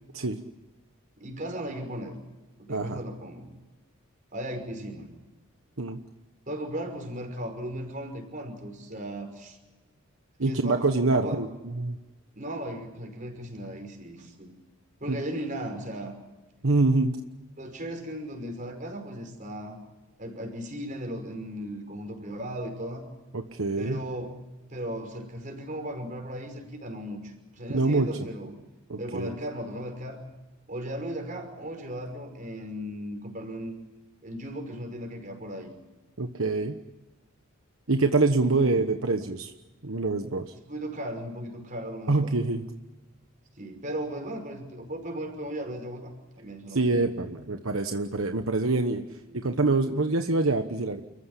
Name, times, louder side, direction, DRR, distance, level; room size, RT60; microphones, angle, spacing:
voice 1, 1.2-2.2 2.6-3.5 4.3-5.1 6.5-9.6 10.4-11.4 12.4-14.5 15.0-16.2 17.6-19.8 20.2-23.0 23.8-24.4 24.7-28.5 29.0-30.2 30.7-33.7 34.2-35.7 38.6-38.8 40.7-42.3 43.6-47.0 49.3-49.4, right 1 dB, 35° right, 4 dB, 5.6 m, -36 dB
voice 2, 2.7-3.0 5.8-6.0 10.4-12.0 15.1-15.2 16.6-17.2 23.3-24.0 27.7-28.2 28.9-29.3 36.2-36.8 37.9-39.5 39.8-40.5 42.1-42.6 46.7-51.0, right 3 dB, 70° right, 6 dB, 1.2 m, -25 dB
30.0 x 15.0 x 10.0 m, 1.2 s
head